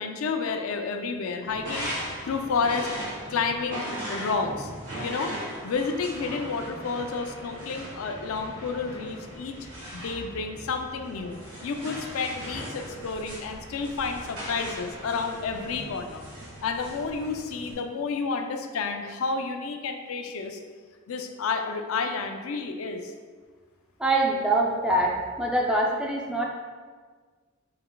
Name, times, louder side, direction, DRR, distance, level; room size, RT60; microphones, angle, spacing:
voice 1, 0.0-1.9 2.3-2.9 3.3-4.7 5.0-5.3 5.6-9.6 9.9-16.2 16.6-20.6 21.1-23.1, left 4 dB, 85° left, 6 dB, 0.4 m, -30 dB
sound 1, 1.5-17.7, equal, 85° right, 1.4 m, -38 dB
voice 2, 24.0-26.4, right 1 dB, 5° right, -2 dB, 0.4 m, -24 dB
4.4 x 3.8 x 2.2 m, 1.5 s
head